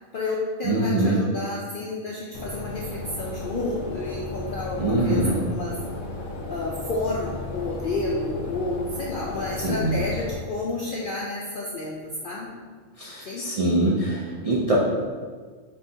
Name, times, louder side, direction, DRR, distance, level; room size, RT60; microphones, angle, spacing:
voice 1, 0.1-5.7 6.5-11.9 12.2-12.5 13.2-13.4, left 2 dB, 65° left, -4 dB, 0.5 m, -30 dB
voice 2, 0.6-1.2 4.8-5.3 9.6-9.9 13.0-14.7, right 2 dB, 50° right, -7 dB, 0.4 m, -23 dB
sound 1, 2.3-10.3, left 3 dB, 90° left, 1.1 m, -35 dB
5.6 x 2.6 x 2.7 m, 1.5 s
omnidirectional pair, 1.4 m